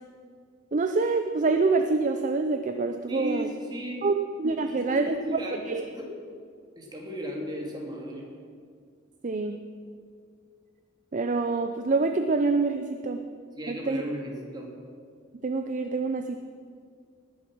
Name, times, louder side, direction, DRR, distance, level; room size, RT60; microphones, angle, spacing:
voice 1, 0.7-3.5 4.0-5.4 5.7-5.8 9.2-9.6 11.1-13.2 13.7-14.0 15.4-16.4, right 3 dB, 40° right, 7 dB, 0.5 m, -26 dB
voice 2, 3.1-4.0 4.6-6.1 6.8-8.3 13.6-14.7, equal, 20° right, -1 dB, 2.4 m, -35 dB
19.0 x 7.2 x 6.2 m, 2.1 s
head